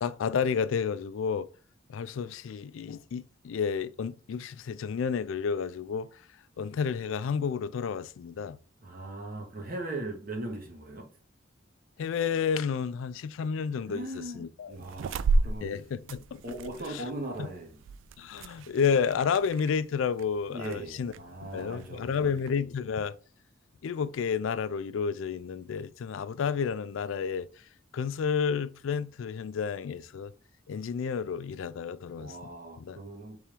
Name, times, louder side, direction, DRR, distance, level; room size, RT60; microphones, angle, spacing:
voice 1, 0.0-1.5 1.9-6.1 6.6-8.6 12.0-14.1 14.4-14.7 15.6-16.4 18.2-21.1 21.5-23.1 23.8-27.5 27.9-30.3 30.7-32.3 32.8-33.0, left 6 dB, 90° left, 0.4 m, -30 dB
voice 2, 8.8-11.1 13.9-15.8 16.4-17.8 20.5-22.4 32.2-33.4, right 2 dB, 45° right, 1.2 m, -39 dB
sound 1, 14.7-22.6, right 3 dB, 80° right, 0.3 m, -34 dB
4.4 x 3.5 x 3.4 m
head